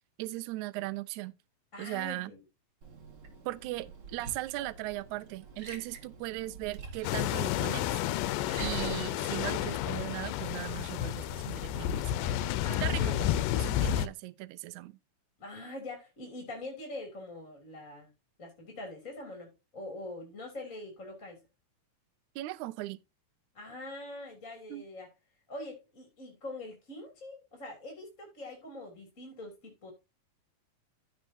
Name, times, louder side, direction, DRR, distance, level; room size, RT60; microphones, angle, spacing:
voice 1, 0.2-1.4 1.8-2.3 3.5-7.9 8.6-12.3 12.8-13.1 13.5-15.0 22.4-23.0 24.7-24.8, right 18 dB, 80° right, 1.7 m, -38 dB
voice 2, 1.7-2.4 8.6-9.0 12.6-13.3 15.4-18.1 18.4-21.4 23.5-25.1 25.5-29.9, left 2 dB, 25° left, 2.6 m, -43 dB
Liquid, 2.8-8.9, right 5 dB, 45° right, 2.1 m, -46 dB
sound 1, 7.0-14.1, left 12 dB, 80° left, 2.1 m, -31 dB
15.0 x 5.5 x 2.7 m
omnidirectional pair, 4.1 m